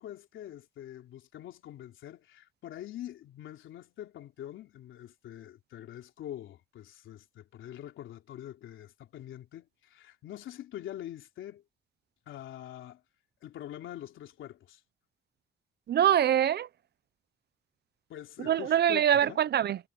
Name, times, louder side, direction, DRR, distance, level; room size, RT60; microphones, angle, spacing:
voice 1, 0.0-11.6 12.3-13.0 13.4-14.8 18.1-19.4, left 12 dB, 80° left, 3.3 m, -44 dB
voice 2, 15.9-16.7 18.4-19.8, right 10 dB, 55° right, 0.8 m, -24 dB
cardioid pair, 90°, 20 cm